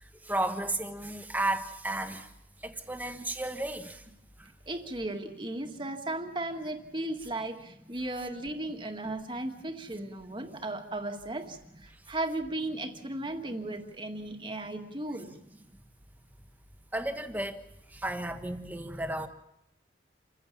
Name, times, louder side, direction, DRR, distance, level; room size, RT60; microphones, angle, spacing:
voice 1, 0.2-2.3 2.6-4.0 4.4-4.5 15.1-15.2 16.9-17.6 17.9-19.3, right 1 dB, 10° right, 1.3 m, -33 dB
voice 2, 4.7-15.4, right 2 dB, 25° right, 1.8 m, -36 dB
28.0 x 15.5 x 7.2 m
head